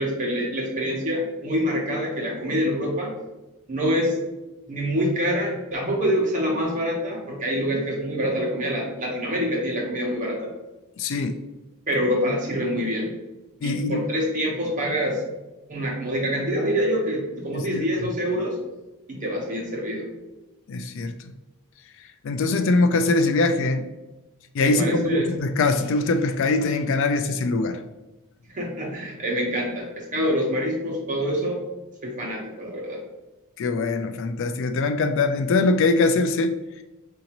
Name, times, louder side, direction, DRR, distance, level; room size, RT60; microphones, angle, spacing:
voice 1, 0.0-3.1 3.7-4.2 4.7-10.5 11.9-13.1 13.6-15.2 15.7-18.6 19.1-20.1 24.6-25.3 28.5-31.6 32.0-33.0, equal, 35° right, -2 dB, 0.9 m, -26 dB
voice 2, 11.0-11.4 13.6-14.0 17.5-17.9 20.7-21.1 22.2-23.9 24.5-27.8 33.6-36.5, left 3 dB, 55° left, 8 dB, 0.3 m, -22 dB
4.8 x 2.6 x 2.9 m, 1.0 s
head